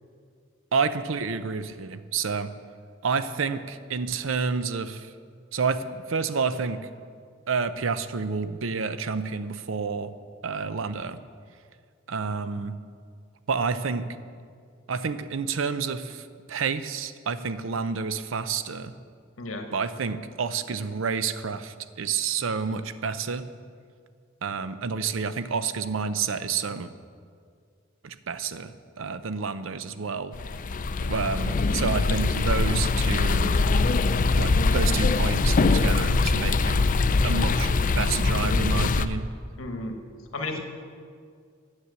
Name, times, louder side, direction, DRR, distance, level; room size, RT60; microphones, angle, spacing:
voice 1, 0.7-2.5 3.0-5.1 5.5-6.8 7.5-10.1 10.4-11.2 12.1-12.8 13.5-14.1 14.9-18.9 19.7-23.4 24.4-26.9 28.0-30.3 31.0-33.6 34.4-36.9 37.2-37.7 38.0-39.3, right 5 dB, 70° right, 12 dB, 0.6 m, -29 dB
sound 1, 30.3-39.1, left 3 dB, 40° left, 0.4 m, -23 dB
voice 2, 39.6-40.0 40.3-40.6, left 2 dB, 90° left, 4 dB, 1.3 m, -32 dB
9.8 x 7.4 x 8.2 m, 2.1 s
head